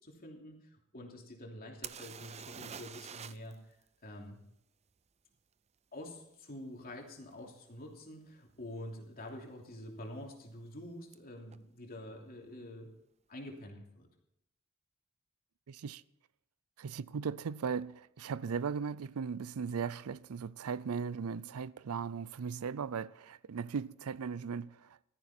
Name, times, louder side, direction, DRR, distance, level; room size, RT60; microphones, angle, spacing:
voice 1, 0.0-3.8 4.0-4.4 5.9-12.9 13.3-14.1, left 1 dB, 45° left, 3.0 m, -47 dB
sound 1, 1.8-3.5 3.8-3.9 7.3-7.4 8.1-8.2 8.5-9.1 11.1-11.2 11.5-11.6, right 8 dB, 30° right, 0.5 m, -46 dB
voice 2, 15.7-16.0 16.8-25.0, right 6 dB, 85° right, 0.5 m, -38 dB
15.0 x 13.5 x 4.3 m
head